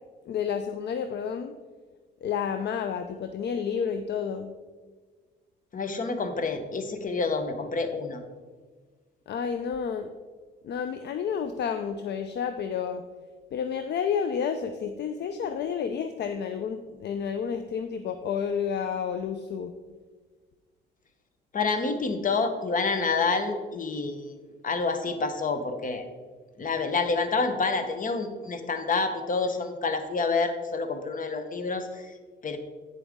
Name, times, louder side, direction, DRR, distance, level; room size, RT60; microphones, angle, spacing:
voice 1, 0.3-1.5 2.2-4.5 9.3-10.1 10.6-13.0 13.5-19.7, left 7 dB, 60° left, 9 dB, 0.5 m, -30 dB
voice 2, 5.7-8.2 21.5-24.3 24.6-26.1 26.6-32.0 32.4-32.6, left 4 dB, 40° left, 8 dB, 1.1 m, -28 dB
9.2 x 7.1 x 3.6 m, 1.4 s
cardioid pair, 90°, 20 cm